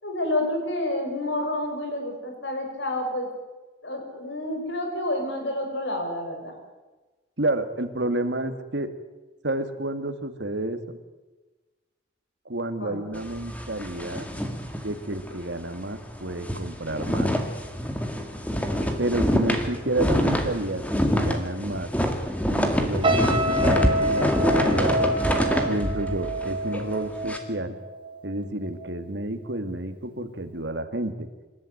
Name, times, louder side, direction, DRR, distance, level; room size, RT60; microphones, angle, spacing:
voice 1, 0.0-3.3 3.8-6.5 12.8-13.0, left 1 dB, 70° left, 4 dB, 5.8 m, -29 dB
voice 2, 7.4-8.9 9.4-11.0 12.5-14.3 14.8-17.3 19.0-21.9 22.5-25.0 25.7-27.8 28.2-31.3, right 1 dB, 70° right, 8 dB, 2.0 m, -30 dB
sound 1, 13.1-15.4 15.7-15.9 16.2-27.4, equal, 10° left, 2.0 m, -26 dB
sound 2, 23.0-28.3 28.6-29.0, right 1 dB, 25° right, 1.5 m, -27 dB
27.0 x 13.0 x 9.4 m, 1.2 s
head